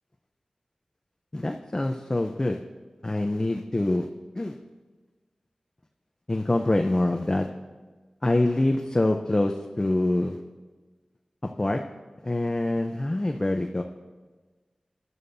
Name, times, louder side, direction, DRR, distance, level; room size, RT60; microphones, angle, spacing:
voice 1, 1.3-2.6 3.0-4.1 4.3-4.6 6.3-7.5 8.2-10.4 11.6-11.8 12.2-13.8, left 1 dB, 30° left, 3 dB, 0.7 m, -25 dB
16.5 x 11.0 x 2.7 m, 1.3 s
wide cardioid pair, 60°, 2 cm